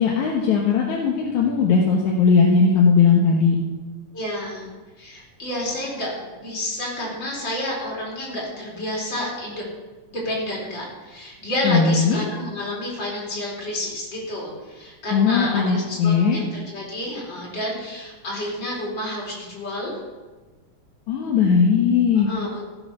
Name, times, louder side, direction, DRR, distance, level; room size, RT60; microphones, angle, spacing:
voice 1, 0.0-3.6 11.6-12.2 15.1-16.4 21.1-22.3, left 5 dB, 70° left, -1 dB, 2.7 m, -18 dB
voice 2, 4.1-4.7 5.0-6.1 6.4-9.6 10.1-20.0 22.2-22.6, left 1 dB, 35° left, -4 dB, 5.1 m, -30 dB
15.5 x 7.9 x 6.9 m, 1.3 s
omnidirectional pair, 3.5 m